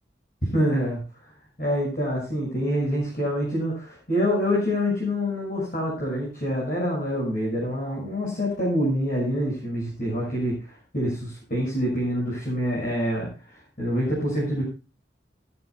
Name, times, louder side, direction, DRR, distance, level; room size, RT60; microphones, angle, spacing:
voice 1, 0.4-1.0 1.6-14.6, equal, 50° left, -2 dB, 6.3 m, -26 dB
17.0 x 15.0 x 2.3 m, 0.32 s
head